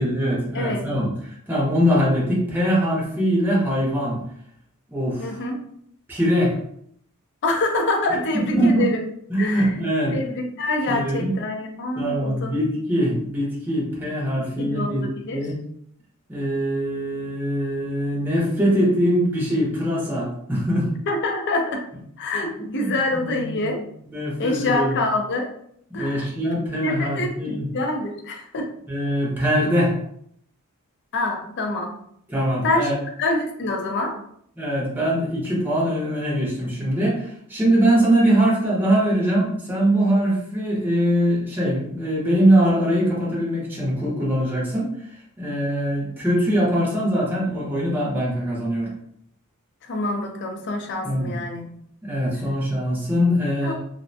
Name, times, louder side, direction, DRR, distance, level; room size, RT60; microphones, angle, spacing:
voice 1, 0.0-4.2 4.9-5.4 6.1-6.5 8.3-8.9 9.3-10.2 10.9-11.3 12.0-15.0 15.3-15.5 16.3-20.9 22.6-22.9 23.3-23.7 24.0-25.0 25.9-27.7 28.9-29.9 32.3-32.9 34.6-45.1 45.4-48.9 51.0-51.3 52.0-53.7, equal, 10° right, -5 dB, 0.6 m, -22 dB
voice 2, 0.5-0.9 5.2-5.6 7.4-9.0 9.4-9.7 10.1-12.6 14.6-15.4 21.1-21.8 22.2-23.8 24.4-25.5 25.9-26.3 26.8-28.7 31.1-32.0 32.6-32.9 33.2-34.2 49.8-51.7 53.6-53.7, left 2 dB, 50° left, 3 dB, 0.4 m, -26 dB
2.4 x 2.1 x 2.6 m, 0.68 s
head